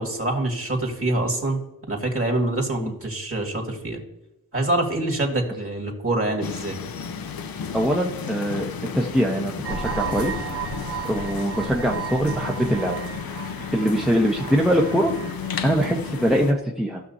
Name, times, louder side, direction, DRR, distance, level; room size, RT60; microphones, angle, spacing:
voice 1, 0.0-1.6 1.9-4.0 4.5-6.8, right 2 dB, 35° right, 0 dB, 2.5 m, -25 dB
sound 1, 6.4-16.5, left 6 dB, 65° left, 0.7 m, -33 dB
voice 2, 7.7-10.3 11.0-13.0 13.7-15.1 15.6-17.0, equal, ahead, -1 dB, 1.0 m, -23 dB
sound 2, 9.6-16.4, right 6 dB, 85° right, 1.0 m, -34 dB
15.5 x 6.1 x 2.8 m, 0.93 s
cardioid pair, 50°, 38 cm